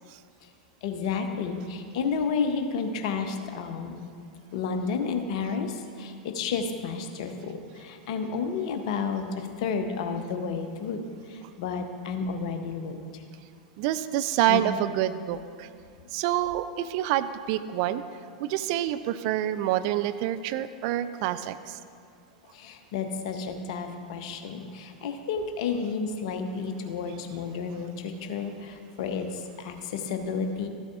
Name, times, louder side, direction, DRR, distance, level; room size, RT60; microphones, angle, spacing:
voice 1, 0.8-4.0 4.5-13.2 14.5-14.6 22.4-30.7, left 5 dB, 50° left, 6 dB, 0.8 m, -31 dB
voice 2, 13.8-15.7 16.1-18.0 18.4-21.8, right 12 dB, 45° right, 12 dB, 0.3 m, -27 dB
13.5 x 7.7 x 2.5 m, 2.2 s
figure-of-eight pair, 90°, 4 cm